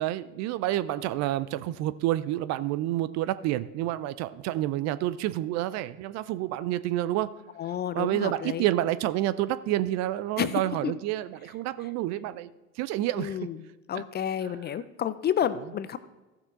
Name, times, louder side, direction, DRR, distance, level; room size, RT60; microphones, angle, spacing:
voice 1, 0.0-7.3 7.9-12.5 12.8-13.5 13.9-14.0 14.5-14.6, right 14 dB, 50° right, 15 dB, 0.5 m, -29 dB
voice 2, 7.6-8.7 10.4-10.9 13.1-13.6 13.9-16.0, left 9 dB, 30° left, 14 dB, 0.5 m, -30 dB
14.5 x 6.3 x 3.7 m, 1.1 s
figure-of-eight pair, 70°, 35 cm